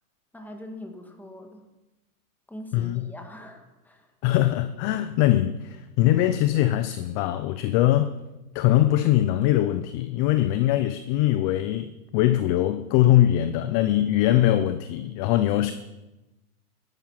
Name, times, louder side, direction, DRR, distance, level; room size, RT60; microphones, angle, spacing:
voice 1, 0.3-1.6 2.5-4.1, left 1 dB, 5° left, 1.9 m, -42 dB
voice 2, 2.7-3.1 4.2-8.2 8.5-15.7, left 13 dB, 35° left, 0.6 m, -22 dB
15.5 x 11.0 x 5.9 m
hypercardioid pair, 125°, 47 cm